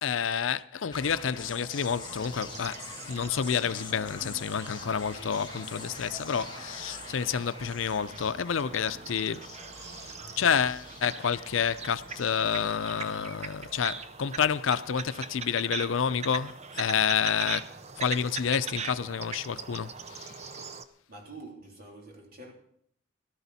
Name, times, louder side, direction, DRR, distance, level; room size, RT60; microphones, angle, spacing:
voice 1, 0.0-2.8 3.1-9.5 9.7-20.6, left 7 dB, 90° left, 0.5 m, -29 dB
sound 1, 0.9-13.9, left 4 dB, 25° left, 1.9 m, -46 dB
sound 2, 1.7-20.8, right 5 dB, 35° right, 0.6 m, -42 dB
voice 2, 21.1-22.5, right 2 dB, 50° right, 3.4 m, -46 dB
18.0 x 12.0 x 4.2 m
head